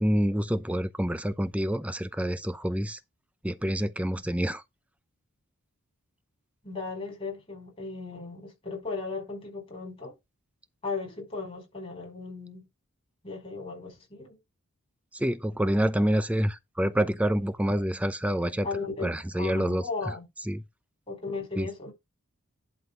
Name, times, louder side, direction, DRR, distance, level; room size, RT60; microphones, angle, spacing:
voice 1, 0.0-3.0 3.4-4.6 15.1-18.7 19.0-20.1 20.5-20.6 21.6-21.7, equal, 5° right, 0.6 m, -27 dB
voice 2, 6.6-10.1 10.8-12.7 13.2-14.4 18.6-19.1 19.4-20.3 21.1-21.9, left 4 dB, 25° left, 5.4 m, -36 dB
11.5 x 4.4 x 4.9 m
head